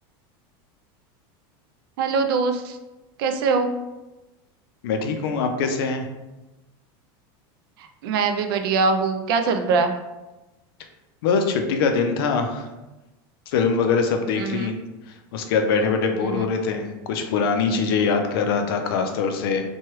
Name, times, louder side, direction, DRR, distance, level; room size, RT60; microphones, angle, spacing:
voice 1, 2.0-2.8 3.2-3.7 8.0-9.9 14.4-14.7 16.2-16.5, right 4 dB, 70° right, 7 dB, 0.4 m, -22 dB
voice 2, 4.8-6.0 11.2-12.7 13.5-14.7 15.3-19.7, left 5 dB, 75° left, 5 dB, 0.5 m, -23 dB
3.0 x 2.2 x 3.0 m, 1.0 s
supercardioid pair, 175°, 12 cm